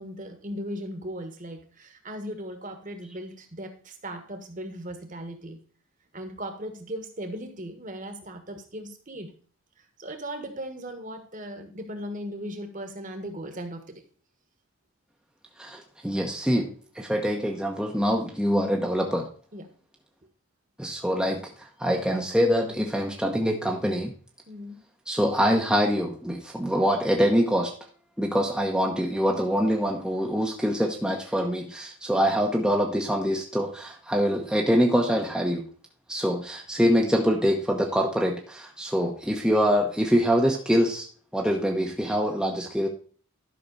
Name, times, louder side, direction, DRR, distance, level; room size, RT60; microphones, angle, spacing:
voice 1, 0.0-5.6 6.1-9.3 9.8-14.0 19.5-19.7 24.5-24.8, equal, 35° right, 7 dB, 1.5 m, -38 dB
voice 2, 15.6-16.7 16.9-19.3 20.8-24.1 25.1-27.7 28.2-35.6 36.1-41.1 41.3-42.9, equal, 5° right, 0 dB, 0.9 m, -24 dB
12.0 x 6.0 x 4.0 m, 0.43 s
head